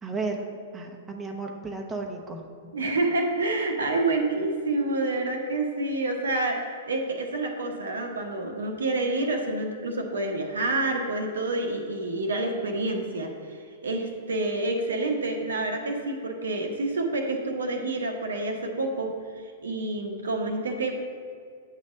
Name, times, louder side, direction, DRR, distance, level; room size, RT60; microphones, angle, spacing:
voice 1, 0.0-3.0, right 3 dB, 15° right, 1 dB, 0.8 m, -34 dB
voice 2, 2.7-13.3 13.8-20.9, right 2 dB, 85° right, 3 dB, 0.9 m, -28 dB
8.3 x 3.2 x 6.5 m, 2.2 s
hypercardioid pair, 110°, 0 cm